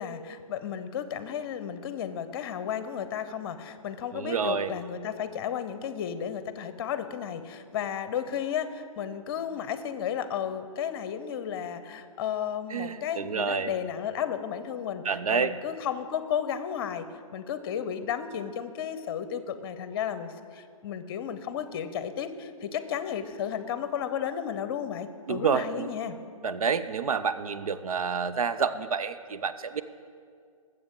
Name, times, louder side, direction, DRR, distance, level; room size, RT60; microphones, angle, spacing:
voice 1, 0.0-17.1 17.3-26.2, left 8 dB, 40° left, 12 dB, 0.8 m, -33 dB
voice 2, 4.1-4.7 12.7-13.7 15.0-15.5 25.3-25.9 26.4-29.8, right 6 dB, 80° right, 12 dB, 0.6 m, -28 dB
19.5 x 7.7 x 3.7 m, 2.2 s
hypercardioid pair, 135°, 18 cm